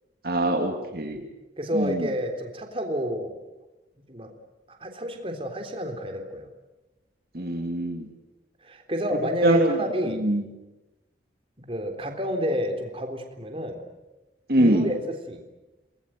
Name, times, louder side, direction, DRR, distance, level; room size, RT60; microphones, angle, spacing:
voice 1, 0.2-1.2 1.7-2.1 7.3-8.1 9.4-9.8 10.1-10.4 14.5-14.9, right 1 dB, 55° right, 3 dB, 2.5 m, -23 dB
voice 2, 1.6-3.4 4.1-4.3 4.7-6.5 8.6-10.2 11.6-13.8 14.6-15.4, equal, 30° right, 4 dB, 3.5 m, -30 dB
28.5 x 21.0 x 9.2 m, 1.0 s
head